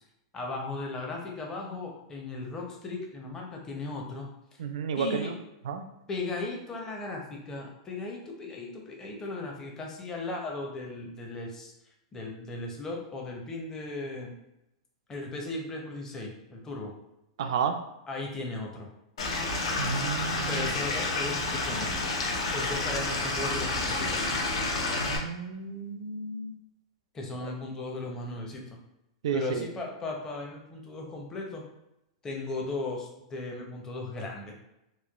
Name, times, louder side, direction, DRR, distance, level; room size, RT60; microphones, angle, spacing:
voice 1, 0.3-4.3 5.0-5.4 6.1-11.7 12.1-14.3 15.1-16.9 18.1-18.9 20.5-22.0 22.5-24.2 27.1-28.8 29.3-31.6 32.2-34.5, left 2 dB, 20° left, -1 dB, 0.6 m, -36 dB
voice 2, 4.6-5.4 5.7-5.8 17.4-17.7 19.8-20.7 24.9-26.5 29.2-29.7, right 6 dB, 75° right, 7 dB, 0.3 m, -32 dB
Stream / Liquid, 19.2-25.2, left 2 dB, 80° left, 0.6 m, -29 dB
3.0 x 2.1 x 2.3 m, 0.87 s
hypercardioid pair, 130°, 3 cm